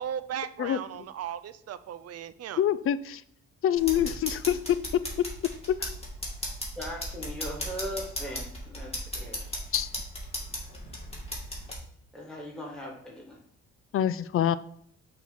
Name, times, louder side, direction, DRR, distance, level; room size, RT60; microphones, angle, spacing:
voice 1, 0.0-2.6, right 9 dB, 55° right, 13 dB, 0.5 m, -36 dB
voice 2, 0.6-1.1 2.6-3.2 3.6-5.0 5.7-5.9 9.7-9.9 13.9-14.6, left 10 dB, 45° left, 16 dB, 0.4 m, -26 dB
sound 1, 3.8-11.8, equal, 20° left, 2.2 m, -36 dB
voice 3, 6.7-9.4 12.1-13.4, equal, ahead, -2 dB, 1.7 m, -39 dB
6.2 x 3.0 x 5.5 m, 0.66 s
cardioid pair, 90°, 30 cm